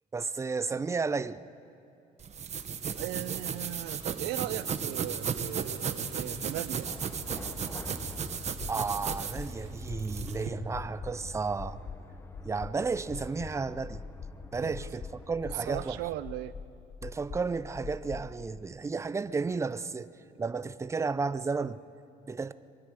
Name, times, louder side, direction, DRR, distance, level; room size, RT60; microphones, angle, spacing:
voice 1, 0.1-1.4 8.7-11.8 12.4-14.0 14.5-16.0 17.0-20.1 20.4-21.8 22.3-22.5, right 4 dB, 15° right, 0.5 m, -33 dB
sound 1, 2.2-10.5, right 7 dB, 40° right, 1.2 m, -35 dB
voice 2, 2.9-6.9 14.6-14.7 15.7-16.5, right 15 dB, 85° right, 0.6 m, -38 dB
sound 2, 6.8-16.2, left 1 dB, 15° left, 1.1 m, -46 dB
sound 3, 8.4-18.6, left 6 dB, 30° left, 0.5 m, -44 dB
23.5 x 22.5 x 4.9 m
cardioid pair, 110°, 17 cm